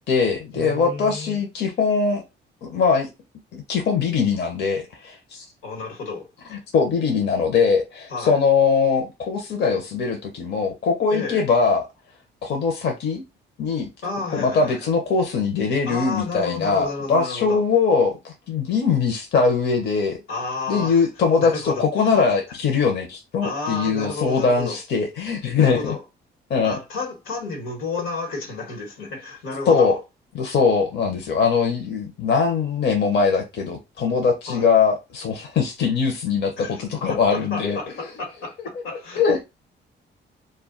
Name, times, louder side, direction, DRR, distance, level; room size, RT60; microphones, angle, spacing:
voice 1, 0.0-2.2 2.6-3.1 3.5-5.4 6.5-11.9 12.4-13.2 13.6-13.9 14.3-20.2 20.7-25.9 26.5-26.8 29.7-30.0 30.3-37.8 39.1-39.4, left 5 dB, 60° left, 0.7 m, -21 dB
voice 2, 0.5-1.4 5.6-6.3 8.1-8.4 11.1-11.4 14.0-14.9 15.9-17.6 20.3-21.1 21.4-22.2 23.4-24.8 25.6-26.0 26.6-30.0 34.5-34.7 36.6-39.4, left 3 dB, 85° left, 1.1 m, -31 dB
2.3 x 2.2 x 3.6 m
cardioid pair, 90°, 20 cm